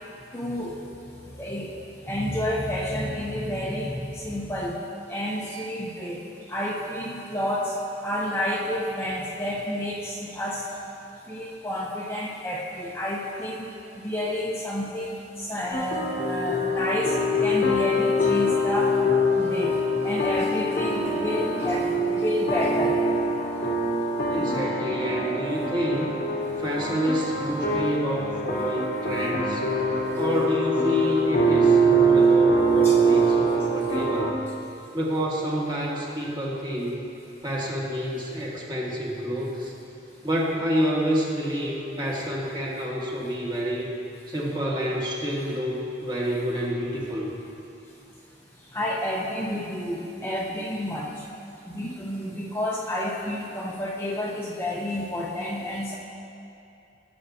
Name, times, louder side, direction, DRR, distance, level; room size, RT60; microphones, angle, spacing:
voice 1, 0.3-0.9 1.4-1.7 2.1-4.7 5.1-6.2 6.5-7.7 8.0-10.8 11.3-13.7 14.0-18.9 19.4-19.8 20.0-23.0 32.8-33.0 48.7-51.1 51.7-56.0, left 1 dB, 15° left, -5 dB, 0.7 m, -30 dB
sound 1, 15.7-34.3, right 1 dB, 55° left, 1.1 m, -24 dB
voice 2, 24.3-26.2 26.6-29.6 30.1-34.4 34.9-37.0 37.4-39.7 40.2-43.9 44.3-47.3, equal, 25° right, -4 dB, 1.6 m, -28 dB
17.5 x 6.8 x 2.8 m, 2.7 s
head